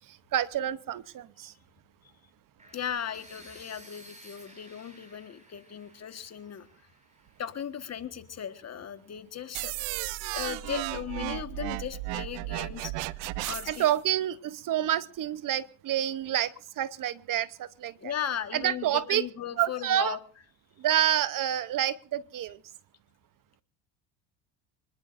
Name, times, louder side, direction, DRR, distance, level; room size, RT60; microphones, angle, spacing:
voice 1, 0.0-1.5 13.7-18.1 18.5-19.2 19.6-20.2 20.8-22.6, right 11 dB, 45° right, 16 dB, 0.8 m, -28 dB
sound 1, 2.6-8.5, right 1 dB, 15° right, 7.6 m, -55 dB
voice 2, 2.7-6.7 7.4-9.7 10.3-12.9 13.4-13.8 18.0-20.2, left 9 dB, 35° left, 10 dB, 1.5 m, -37 dB
sound 2, 9.5-13.9, right 18 dB, 80° right, 0.7 m, -34 dB
26.5 x 20.5 x 2.5 m, 0.39 s
cardioid pair, 115°, 44 cm